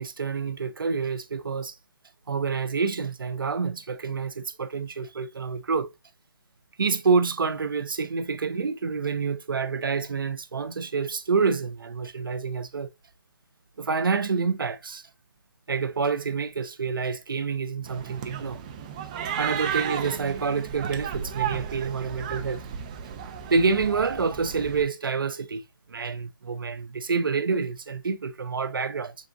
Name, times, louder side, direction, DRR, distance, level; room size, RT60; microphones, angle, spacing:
voice 1, 0.0-1.7 2.3-5.9 6.8-12.9 13.8-15.0 15.7-18.6 19.4-22.6 23.5-25.6 25.9-29.2, right 5 dB, 80° right, 0.7 m, -27 dB
sound 1, 17.8-24.8, right 8 dB, 20° right, 0.4 m, -34 dB
4.9 x 3.6 x 2.5 m
hypercardioid pair, 160°, 11 cm